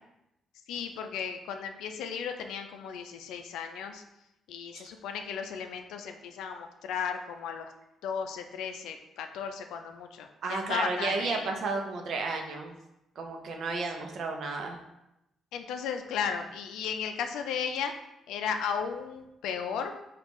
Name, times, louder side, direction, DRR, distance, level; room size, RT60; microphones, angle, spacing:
voice 1, 0.7-4.0 4.5-7.7 8.0-11.5 15.5-17.9 18.3-19.9, left 7 dB, 85° left, 6 dB, 0.4 m, -35 dB
voice 2, 10.4-12.7 13.2-14.8, right 3 dB, 65° right, 3 dB, 0.6 m, -32 dB
5.2 x 2.4 x 3.1 m, 0.89 s
cardioid pair, 90°, 0 cm